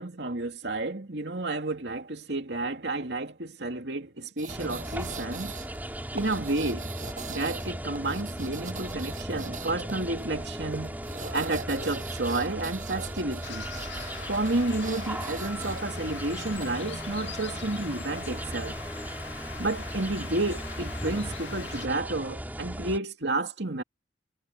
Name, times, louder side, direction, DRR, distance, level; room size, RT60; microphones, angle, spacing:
voice 1, 0.0-5.5 6.1-6.9 7.3-11.0 11.3-13.7 14.3-18.7 19.6-23.8, right 2 dB, 70° right, 2.6 m, -31 dB
sound 1, 4.4-17.1, right 4 dB, 45° right, 8.0 m, -43 dB
sound 2, 4.5-23.0, right 1 dB, 10° right, 3.6 m, -37 dB
sound 3, 13.4-21.9, left 7 dB, 85° left, 2.2 m, -42 dB
head